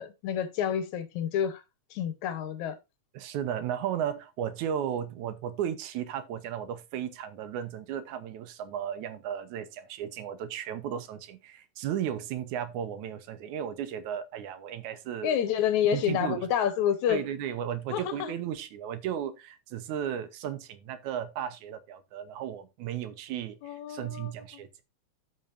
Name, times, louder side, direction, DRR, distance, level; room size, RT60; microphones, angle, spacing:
voice 1, 0.0-1.6 1.9-2.8 15.2-17.2 17.9-18.3 23.6-24.3, left 9 dB, 80° left, 2.4 m, -28 dB
voice 2, 3.1-15.4 15.9-16.4 17.1-24.8, right 9 dB, 85° right, 2.3 m, -35 dB
14.5 x 5.4 x 2.6 m
omnidirectional pair, 3.3 m